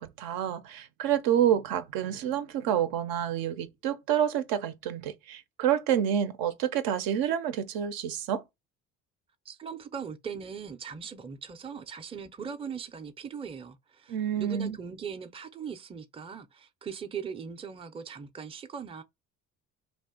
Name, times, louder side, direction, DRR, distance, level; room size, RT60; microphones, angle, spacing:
voice 1, 0.0-8.4 14.1-14.8, right 10 dB, 70° right, 0.5 m, -28 dB
voice 2, 9.5-19.0, right 6 dB, 15° right, 0.4 m, -40 dB
2.5 x 2.3 x 3.5 m
hypercardioid pair, 65°, 38 cm